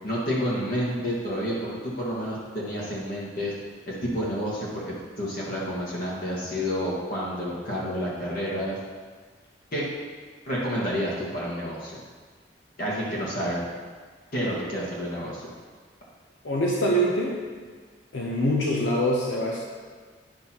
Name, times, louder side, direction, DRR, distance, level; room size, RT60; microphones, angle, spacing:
voice 1, 0.0-3.5 3.9-4.8 5.2-8.8 9.7-9.8 10.5-12.0 12.8-13.6 14.3-15.5, equal, 50° left, -6 dB, 1.7 m, -29 dB
voice 2, 16.4-17.4 18.1-19.6, equal, 85° left, -3 dB, 0.9 m, -24 dB
10.5 x 5.7 x 3.0 m, 1.5 s
head